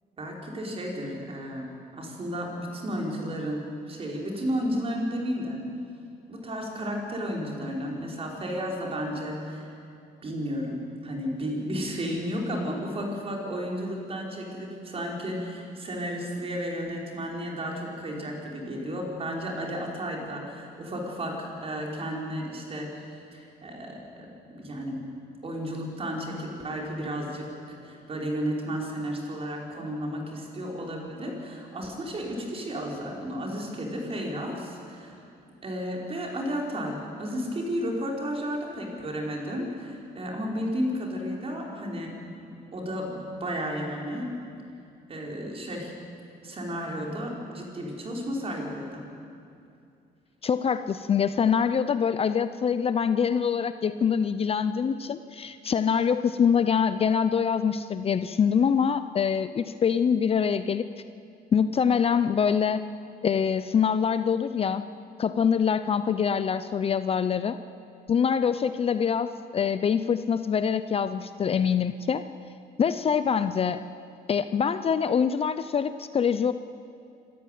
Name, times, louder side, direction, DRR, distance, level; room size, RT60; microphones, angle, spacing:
voice 1, 0.2-3.6 3.9-5.6 6.3-9.7 10.2-22.9 23.3-25.0 25.4-27.5 27.8-35.2 35.6-44.4 45.1-45.9 46.4-49.0, equal, 35° right, 0 dB, 5.3 m, -33 dB
voice 2, 50.4-60.8 61.5-62.8 63.2-64.8 65.2-67.6 68.1-72.2 72.8-73.8 74.3-76.5, left 7 dB, 35° left, 12 dB, 0.7 m, -24 dB
26.5 x 14.0 x 9.4 m, 2.5 s
cardioid pair, 110°, 17 cm